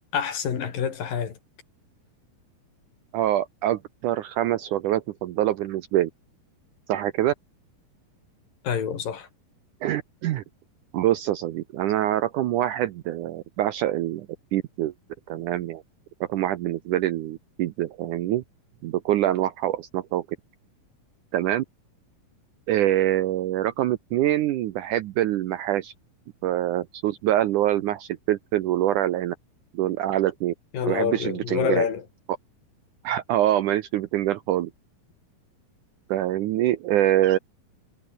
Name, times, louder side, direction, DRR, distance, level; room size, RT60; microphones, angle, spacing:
voice 1, 0.1-1.4 8.6-9.3 30.7-32.0, left 7 dB, 65° left, 4.6 m, -27 dB
voice 2, 3.1-6.1 6.9-7.3 9.8-10.4 10.9-14.3 14.5-14.9 15.3-15.8 16.3-18.4 18.8-20.2 21.3-21.6 22.7-25.9 26.4-29.4 29.7-30.5 30.9-31.9 33.0-34.7 36.1-37.4, right 13 dB, 75° right, 2.0 m, -25 dB
omnidirectional pair, 4.3 m